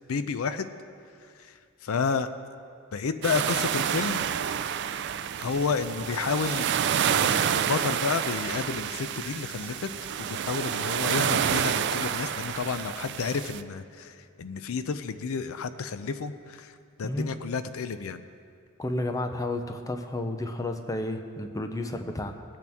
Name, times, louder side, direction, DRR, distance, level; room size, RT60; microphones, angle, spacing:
voice 1, 0.1-0.7 1.4-1.5 1.8-2.3 2.9-4.2 5.4-6.7 7.0-9.9 10.2-16.7 17.0-18.3, left 5 dB, 75° left, 11 dB, 0.5 m, -31 dB
sound 1, 3.2-13.6, right 8 dB, 55° right, 0.4 m, -28 dB
voice 2, 17.0-17.3 18.8-22.4, left 1 dB, 15° left, 6 dB, 0.6 m, -31 dB
19.5 x 8.4 x 3.5 m, 2.3 s
head